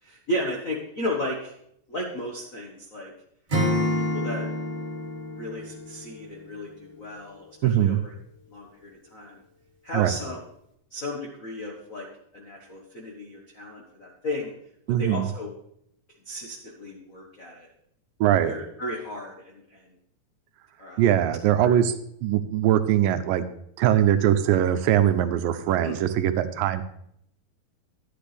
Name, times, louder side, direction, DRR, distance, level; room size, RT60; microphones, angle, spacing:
voice 1, 0.0-1.5 1.9-3.1 4.1-4.5 5.3-8.1 8.5-9.4 9.8-10.4 10.9-12.1 12.3-14.5 15.0-15.5 16.2-17.7 18.4-19.9 20.8-21.1 21.6-21.8 25.8-25.9, left 1 dB, 80° left, -1 dB, 0.7 m, -34 dB
Acoustic guitar / Strum, 3.5-6.6, left 1 dB, 15° right, 2.3 m, -28 dB
voice 2, 7.6-8.0 9.9-10.1 14.9-15.3 18.2-18.5 21.0-21.9 22.2-23.4 23.8-26.8, right 11 dB, 90° right, 10 dB, 2.4 m, -21 dB
11.5 x 10.0 x 3.4 m, 0.72 s
omnidirectional pair, 3.9 m